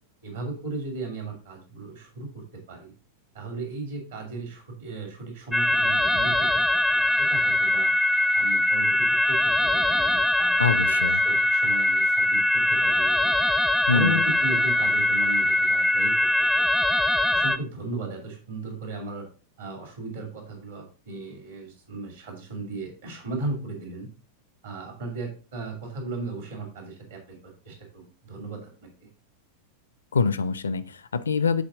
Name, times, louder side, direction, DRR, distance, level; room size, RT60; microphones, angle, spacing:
voice 1, 0.2-2.9 3.3-7.9 8.3-13.3 13.9-16.3 16.5-16.7 17.3-19.3 19.6-24.1 24.6-29.1, right 2 dB, 65° right, 2 dB, 2.6 m, -36 dB
sound 1, 5.5-17.6, left 1 dB, 5° left, 0.4 m, -22 dB
voice 2, 10.6-11.2 13.9-14.2 30.1-31.6, left 5 dB, 70° left, 15 dB, 0.4 m, -24 dB
7.4 x 4.3 x 3.7 m, 0.36 s
figure-of-eight pair, 90°, 0 cm